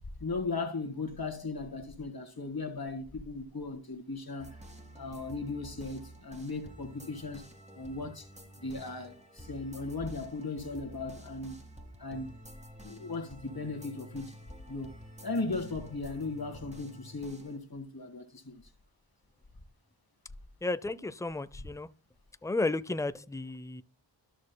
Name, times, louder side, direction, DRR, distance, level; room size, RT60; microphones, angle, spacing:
voice 1, 0.2-4.6 4.9-7.5 7.7-8.3 8.6-11.6 12.0-12.3 12.8-14.4 14.7-15.0 15.2-18.7, left 3 dB, 50° left, 1.6 m, -37 dB
sound 1, 4.4-17.6, equal, 15° right, 1.9 m, -50 dB
voice 2, 20.6-21.9 22.4-23.8, left 2 dB, 5° left, 0.5 m, -33 dB
13.0 x 6.3 x 2.2 m
wide cardioid pair, 40°, 45 cm